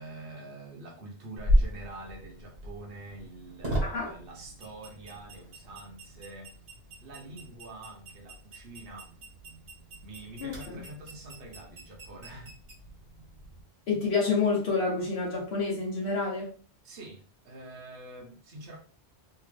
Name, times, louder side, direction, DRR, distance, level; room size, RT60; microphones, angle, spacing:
voice 1, 0.0-6.5 7.0-9.1 10.0-12.6 16.8-18.8, right 2 dB, 60° right, 1.1 m, -46 dB
sound 1, 1.4-13.6, equal, 80° right, 1.8 m, -35 dB
voice 2, 3.8-4.1 10.4-10.8 13.9-16.5, left 4 dB, 70° left, 1.1 m, -28 dB
3.4 x 2.8 x 3.3 m
omnidirectional pair, 1.1 m